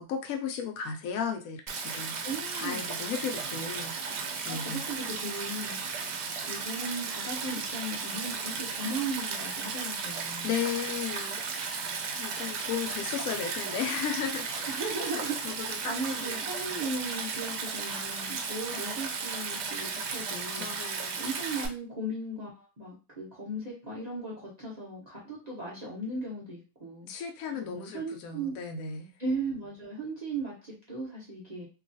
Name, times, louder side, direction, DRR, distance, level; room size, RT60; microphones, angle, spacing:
voice 1, 0.0-2.2 2.5-4.8 10.4-11.8 12.1-14.7 15.1-16.4 20.6-21.3 27.1-29.1, left 7 dB, 90° left, 3 dB, 0.7 m, -35 dB
Stream, 1.7-21.7, right 5 dB, 70° right, 1.1 m, -35 dB
voice 2, 2.2-2.8 4.5-5.8 6.4-10.5 14.6-15.4 15.6-20.7 21.2-27.1 27.6-28.6 29.2-31.7, right 2 dB, 50° right, -5 dB, 0.4 m, -37 dB
3.0 x 2.3 x 2.6 m, 0.31 s
omnidirectional pair, 2.1 m